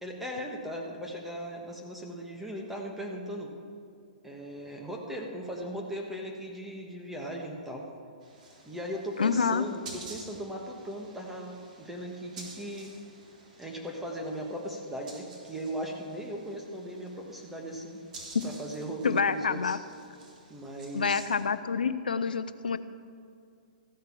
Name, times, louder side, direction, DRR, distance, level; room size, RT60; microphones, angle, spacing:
voice 1, 0.0-3.5 4.2-7.9 8.7-12.9 13.6-18.0 18.4-19.8 20.5-21.3, equal, 5° right, 0 dB, 1.4 m, -38 dB
sound 1, 8.2-21.4, right 2 dB, 55° right, 3.8 m, -51 dB
voice 2, 9.2-9.6 19.0-19.8 20.9-22.8, left 5 dB, 85° left, 13 dB, 0.5 m, -27 dB
14.5 x 6.6 x 7.4 m, 2.4 s
hypercardioid pair, 130°, 5 cm